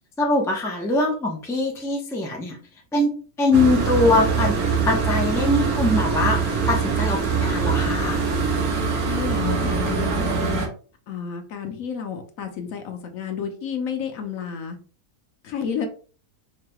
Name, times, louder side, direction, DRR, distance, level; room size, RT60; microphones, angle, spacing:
voice 1, 0.2-2.6 2.9-4.5 4.9-6.4 6.7-8.2, left 2 dB, 5° left, -1 dB, 0.4 m, -22 dB
sound 1, 3.5-10.7, right 5 dB, 80° right, 1.3 m, -23 dB
voice 2, 9.0-10.6 11.1-14.8 15.4-15.9, left 7 dB, 70° left, 5 dB, 1.1 m, -30 dB
4.7 x 3.0 x 2.3 m, 0.39 s
omnidirectional pair, 1.5 m